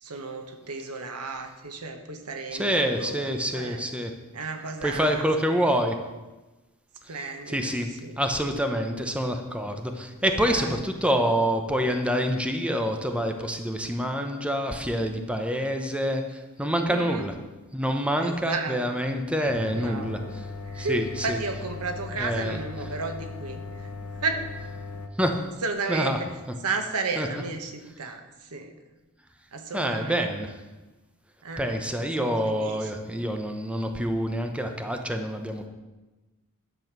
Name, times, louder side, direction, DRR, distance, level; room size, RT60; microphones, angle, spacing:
voice 1, 0.0-3.8 4.3-5.3 5.5-5.6 7.1-7.7 8.0-8.2 10.3-10.8 11.1-11.2 16.8-17.3 18.2-18.8 19.7-20.4 20.7-23.9 24.2-24.4 25.6-26.3 26.6-28.7 29.5-30.3 31.4-31.8 32.2-32.9, right 3 dB, 90° right, 6 dB, 1.3 m, -33 dB
voice 2, 2.5-4.1 4.8-6.0 7.5-7.9 8.2-17.3 17.7-20.2 20.8-21.4 22.2-22.6 25.2-25.4 25.9-26.2 27.2-27.3 29.7-30.5 31.6-35.7, equal, 5° right, 5 dB, 0.8 m, -27 dB
High Voltage Substation, 19.5-25.1, left 3 dB, 80° left, 1.2 m, -38 dB
10.5 x 7.2 x 6.1 m, 1.1 s
head